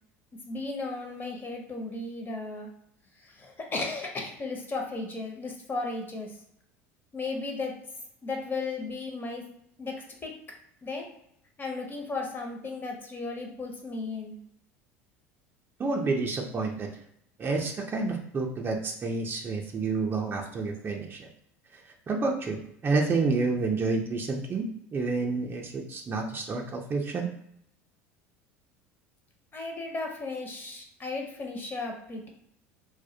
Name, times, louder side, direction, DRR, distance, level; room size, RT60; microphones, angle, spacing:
voice 1, 0.4-2.7 3.2-6.3 7.1-7.7 8.2-9.4 9.8-9.9 10.2-10.3 10.8-11.1 11.6-14.4 29.5-32.3, left 3 dB, 30° left, 2 dB, 0.6 m, -35 dB
voice 2, 15.8-16.9 17.4-21.3 22.1-27.3, right 3 dB, 30° right, 1 dB, 0.4 m, -29 dB
2.2 x 2.1 x 2.7 m, 0.71 s
hypercardioid pair, 85°, 7 cm